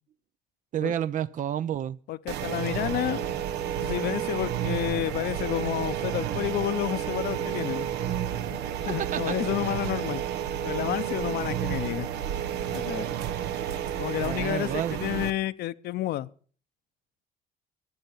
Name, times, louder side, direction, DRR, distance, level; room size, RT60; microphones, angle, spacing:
voice 1, 0.7-2.0 8.9-9.4 14.2-15.0, right 10 dB, 50° right, 0.6 m, -30 dB
voice 2, 2.1-3.2 3.7-7.9 8.5-10.2 10.6-12.1 12.7-13.1 14.0-16.3, left 15 dB, 70° left, 0.8 m, -30 dB
sound 1, 2.3-15.3, right 10 dB, 85° right, 1.0 m, -31 dB
22.0 x 8.1 x 5.6 m
cardioid pair, 110°, 17 cm